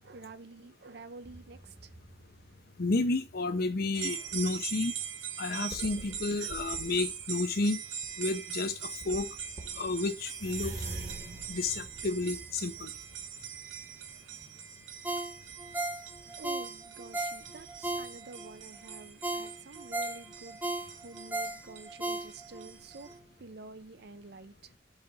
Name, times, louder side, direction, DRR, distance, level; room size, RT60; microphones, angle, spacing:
voice 1, 0.0-2.0 2.2-2.4 16.4-20.6 20.9-23.1 23.4-24.7, right 3 dB, 55° right, 0.6 m, -49 dB
sound 1, 1.2-3.4 3.9-4.6 5.1-5.2 5.7-7.3 8.0-8.2 8.7-8.8 9.0-14.1 14.4-14.5, right 2 dB, 40° right, 1.2 m, -46 dB
voice 2, 2.8-4.9 5.4-7.8 8.2-9.3 9.8-10.7 11.5-12.9, left 3 dB, 50° left, 0.6 m, -31 dB
sound 2, 3.9-23.2, right 8 dB, 80° right, 1.0 m, -42 dB
Ringtone, 15.0-18.5 18.9-19.0 19.2-22.7 23.1-23.2, right 2 dB, 10° right, 0.8 m, -36 dB
5.6 x 3.9 x 5.8 m
head